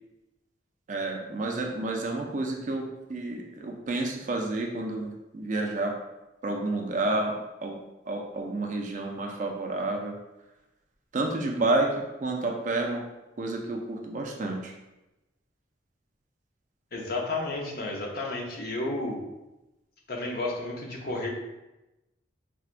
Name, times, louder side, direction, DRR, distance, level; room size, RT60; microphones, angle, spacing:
voice 1, 0.9-5.9 6.4-7.8 8.1-10.2 11.1-13.0 13.4-14.7, right 2 dB, 40° right, 1 dB, 0.4 m, -30 dB
voice 2, 16.9-19.2 20.1-21.3, left 2 dB, 55° left, 0 dB, 0.6 m, -32 dB
4.3 x 2.2 x 2.4 m, 1.0 s
head